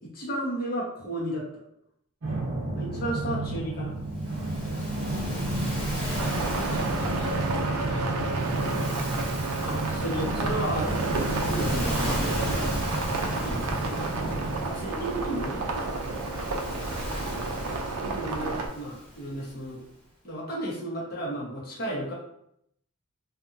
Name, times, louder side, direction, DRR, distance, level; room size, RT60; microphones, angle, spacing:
voice 1, 0.0-1.5 2.7-3.9 9.6-12.8 13.1-14.4 14.6-16.1 17.4-17.5 17.9-19.8 20.2-22.1, right 1 dB, 40° left, -6 dB, 1.0 m, -34 dB
sound 1, 2.2-14.7, right 2 dB, 60° right, 0.7 m, -31 dB
Waves surf, 4.1-19.6, equal, 5° left, 0.9 m, -38 dB
voice 2, 6.0-8.9 13.3-13.5 16.3-17.2, equal, 70° left, -4 dB, 1.0 m, -46 dB
sound 2, 6.2-18.7, right 3 dB, 85° right, 0.4 m, -31 dB
2.7 x 2.6 x 2.5 m, 0.73 s
head